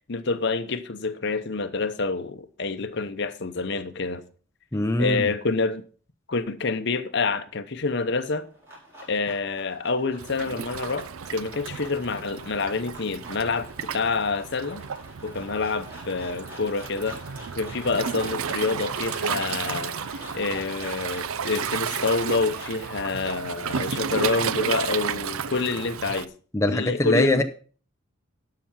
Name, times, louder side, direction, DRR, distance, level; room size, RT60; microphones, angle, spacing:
voice 1, 0.1-4.2 5.0-5.8 6.3-8.5 9.1-14.8 15.2-17.2 17.6-26.3 26.7-27.4, left 4 dB, 55° left, 0.8 m, -27 dB
voice 2, 4.7-5.2 26.5-27.4, left 1 dB, 15° left, 0.6 m, -22 dB
sound 1, 8.3-22.9, equal, 15° right, 4.6 m, -45 dB
Waves surf, 10.2-26.3, right 7 dB, 85° right, 0.6 m, -32 dB
12.0 x 5.8 x 5.8 m
head